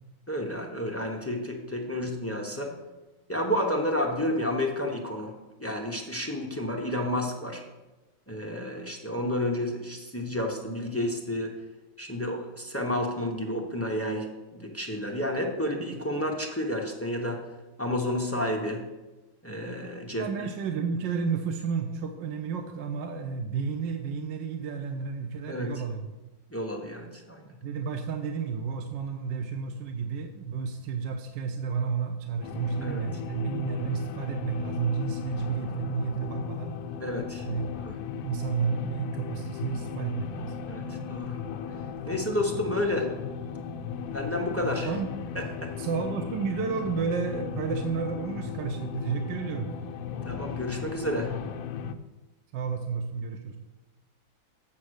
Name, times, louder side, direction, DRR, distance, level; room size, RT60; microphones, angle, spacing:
voice 1, 0.3-2.7 3.3-7.6 8.3-11.5 12.0-17.4 17.8-18.8 19.4-20.3 25.5-25.7 26.5-27.4 32.8-33.0 37.0-37.5 37.8-38.0 40.7-41.4 42.0-43.1 44.1-44.9 45.3-45.7 50.2-51.3, left 1 dB, 15° left, 1 dB, 0.5 m, -30 dB
voice 2, 20.1-26.1 27.6-36.7 37.4-37.7 38.2-40.6 44.8-45.1 45.8-49.7 52.5-53.6, right 5 dB, 70° right, 6 dB, 1.3 m, -31 dB
sound 1, 32.4-51.9, left 7 dB, 80° left, 1.4 m, -36 dB
7.3 x 7.3 x 6.4 m, 1.1 s
omnidirectional pair, 2.1 m